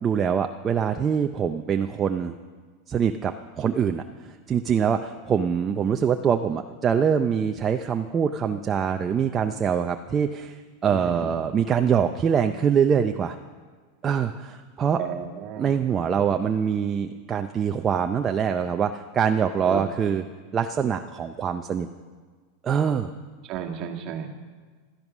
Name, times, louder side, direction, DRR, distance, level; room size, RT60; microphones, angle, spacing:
voice 1, 0.0-2.4 2.9-13.3 14.0-15.0 15.6-20.2 20.5-21.9 22.6-23.1, right 7 dB, 20° right, 6 dB, 0.5 m, -24 dB
voice 2, 10.9-11.3 15.0-15.8 19.7-19.8 23.5-24.3, right 8 dB, 35° right, 3 dB, 1.7 m, -33 dB
16.0 x 13.0 x 6.1 m, 1.5 s
supercardioid pair, 165°, 0 cm